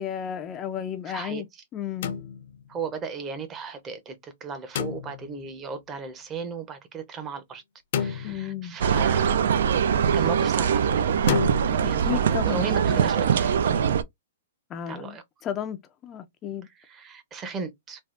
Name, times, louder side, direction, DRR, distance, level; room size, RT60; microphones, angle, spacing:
voice 1, 0.0-1.5 1.7-2.2 8.2-8.8 11.8-13.0 14.7-16.7, left 9 dB, 25° left, 0.4 m, -33 dB
voice 2, 1.1-1.6 2.7-7.6 8.0-9.4 9.9-14.0 14.9-15.2 16.6-18.0, right 5 dB, 20° right, 0.6 m, -36 dB
sound 1, 2.0-2.8 4.7-5.5 7.9-8.8 11.3-11.6, left 8 dB, 60° left, 0.7 m, -30 dB
sound 2, 8.8-14.0, right 8 dB, 70° right, 0.3 m, -22 dB
3.4 x 2.3 x 2.4 m
hypercardioid pair, 145°, 0 cm